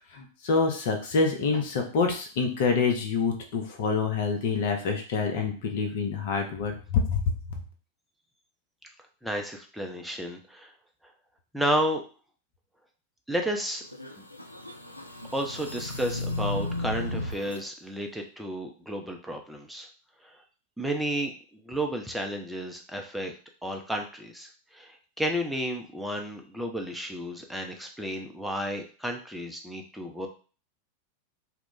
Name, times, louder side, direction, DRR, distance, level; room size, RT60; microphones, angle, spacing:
voice 1, 0.2-7.2, left 4 dB, 50° left, 4 dB, 0.7 m, -26 dB
voice 2, 9.2-10.7 11.5-12.0 13.3-13.8 14.2-14.3 15.3-19.9 20.2-20.3 20.8-23.3 23.6-30.3, equal, ahead, 2 dB, 0.5 m, -32 dB
sound 1, 13.9-17.6, left 2 dB, 85° left, 0.3 m, -34 dB
2.3 x 2.1 x 3.7 m, 0.38 s
figure-of-eight pair, 90°, 0 cm